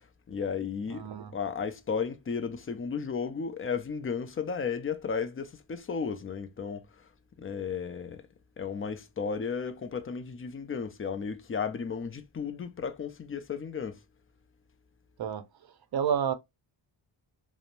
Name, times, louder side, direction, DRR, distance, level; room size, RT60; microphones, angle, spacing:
voice 1, 0.3-7.1 7.4-8.2 8.6-14.0, left 6 dB, 30° left, 0.4 m, -34 dB
voice 2, 0.9-1.3 15.2-15.4 15.9-16.3, right 8 dB, 55° right, 0.6 m, -29 dB
2.9 x 2.0 x 2.5 m
wide cardioid pair, 100°, 47 cm